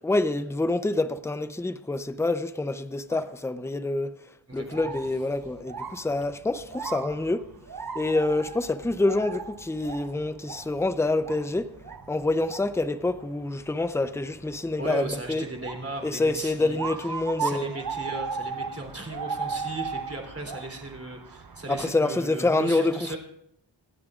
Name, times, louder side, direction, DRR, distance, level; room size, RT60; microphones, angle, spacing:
voice 1, 0.0-4.1 4.5-7.4 7.9-11.7 12.1-15.4 16.0-17.7 21.7-23.2, left 2 dB, 5° left, 0.6 m, -27 dB
voice 2, 4.5-4.9 14.8-16.8 17.4-23.2, right 2 dB, 30° right, 3.3 m, -36 dB
sound 1, 4.5-21.9, right 5 dB, 45° right, 1.0 m, -37 dB
26.5 x 11.0 x 2.5 m
wide cardioid pair, 85°, 47 cm